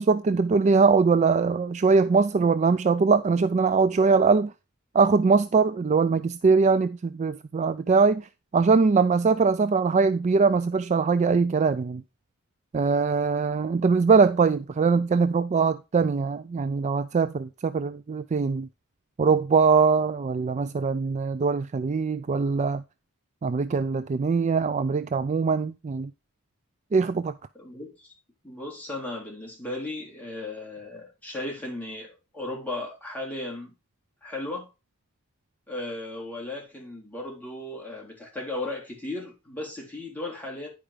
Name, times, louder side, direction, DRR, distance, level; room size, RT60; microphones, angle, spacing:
voice 1, 0.0-4.5 4.9-8.3 8.5-12.0 12.7-18.7 19.2-22.8 23.4-26.1 26.9-27.3, right 4 dB, 30° right, 0.3 m, -22 dB
voice 2, 27.6-28.1 28.4-33.7 34.2-34.7 35.7-40.7, left 2 dB, 5° left, 3.6 m, -36 dB
10.0 x 4.9 x 4.9 m
head